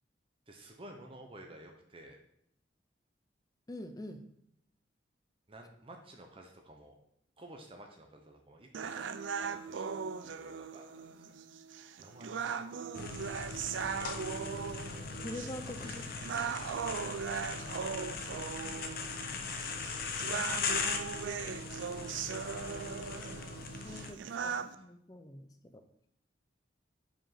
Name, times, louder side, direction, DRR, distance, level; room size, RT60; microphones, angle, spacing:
voice 1, 0.5-2.2 5.5-7.0 7.4-9.1 9.4-11.3 11.7-13.0 14.4-14.9 15.6-16.0 19.0-19.2 24.0-24.8, right 1 dB, 30° right, 3 dB, 0.7 m, -54 dB
voice 2, 3.7-4.2 15.2-16.0 17.7-18.0 23.6-25.8, left 1 dB, 20° left, 7 dB, 0.5 m, -45 dB
sound 1, 8.7-24.8, right 6 dB, 75° right, 0.4 m, -39 dB
sound 2, 12.9-24.1, left 5 dB, 50° left, 0.8 m, -39 dB
5.1 x 5.0 x 5.7 m, 0.73 s
head